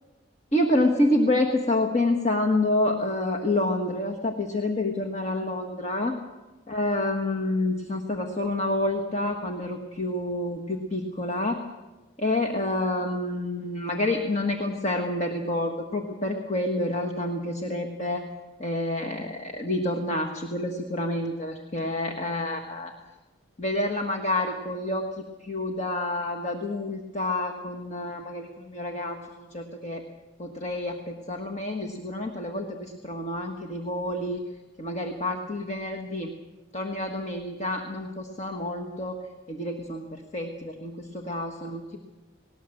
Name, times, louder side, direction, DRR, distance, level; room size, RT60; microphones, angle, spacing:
voice 1, 0.5-6.2 6.7-11.6 12.2-18.3 18.6-22.9 23.6-30.0 30.4-34.4 34.8-36.3 36.7-39.2 39.5-42.0, left 1 dB, 35° left, 2 dB, 1.4 m, -28 dB
19.5 x 18.5 x 7.7 m, 1.2 s
head